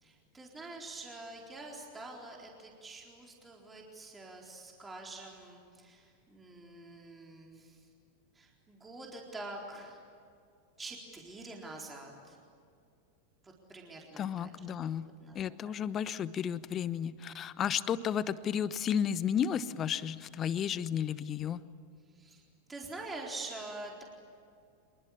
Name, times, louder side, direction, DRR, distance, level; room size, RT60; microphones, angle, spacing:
voice 1, 0.0-7.8 8.3-10.0 10.8-12.4 13.4-14.5 14.8-14.9 15.2-15.4 15.6-15.7 22.1-22.4 22.7-24.0, right 2 dB, 15° right, -1 dB, 4.1 m, -46 dB
voice 2, 14.2-15.1 15.3-21.6, left 8 dB, 30° left, 17 dB, 0.9 m, -33 dB
27.0 x 22.5 x 8.6 m, 2.4 s
figure-of-eight pair, 90°, 0 cm